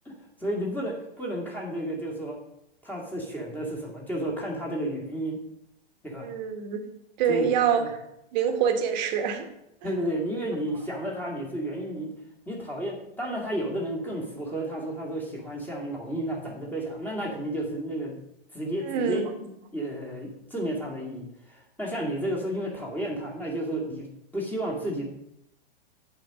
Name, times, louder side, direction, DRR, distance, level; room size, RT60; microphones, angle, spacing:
voice 1, 0.4-2.4 2.8-5.4 6.0-6.3 7.3-7.5 7.8-7.9 9.8-12.1 12.5-18.2 18.5-24.1 24.3-25.1, right 1 dB, 5° left, -3 dB, 2.0 m, -32 dB
voice 2, 6.2-6.8 7.2-8.0 8.3-9.5 18.8-19.2, right 7 dB, 45° right, 6 dB, 1.4 m, -25 dB
8.0 x 4.5 x 6.2 m, 0.81 s
figure-of-eight pair, 110°, 31 cm